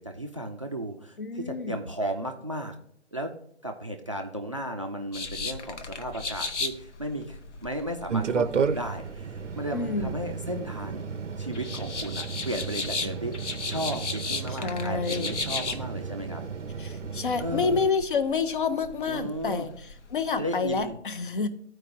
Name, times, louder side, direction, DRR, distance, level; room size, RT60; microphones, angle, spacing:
voice 1, 0.0-2.7 3.1-3.3 3.6-16.4 17.4-17.8 19.1-19.7 20.4-20.9, right 1 dB, 30° right, 5 dB, 0.4 m, -34 dB
voice 2, 1.2-1.8 9.7-10.2 14.5-15.4 16.8-21.5, left 5 dB, 45° left, 11 dB, 0.7 m, -29 dB
sound 1, 5.1-20.9, left 4 dB, 75° left, 0.9 m, -37 dB
sound 2, 8.1-17.9, right 6 dB, 85° right, 0.6 m, -33 dB
13.5 x 4.6 x 2.5 m, 0.71 s
figure-of-eight pair, 145°, 36 cm